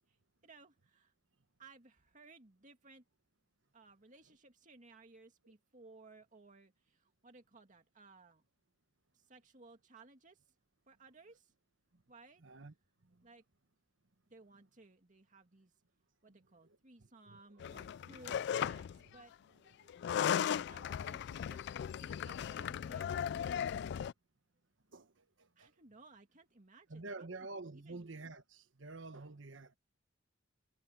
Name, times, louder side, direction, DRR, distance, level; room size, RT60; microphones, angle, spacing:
voice 1, 0.4-1.1 1.6-3.0 3.7-8.4 9.1-10.4 10.9-11.5 12.1-12.4 13.2-13.4 14.3-15.7 16.2-18.4 18.6-19.3 19.8-21.6 21.9-23.1 25.6-28.1, right 3 dB, 40° right, 2.2 m, -60 dB
voice 2, 12.4-12.7 16.3-16.4 17.3-17.7 19.0-19.1 24.9-25.1 25.6-25.7 26.9-29.7, right 3 dB, 70° right, 1.2 m, -48 dB
sound 1, 17.6-19.0 19.9-24.1, left 8 dB, 60° left, 0.3 m, -37 dB
head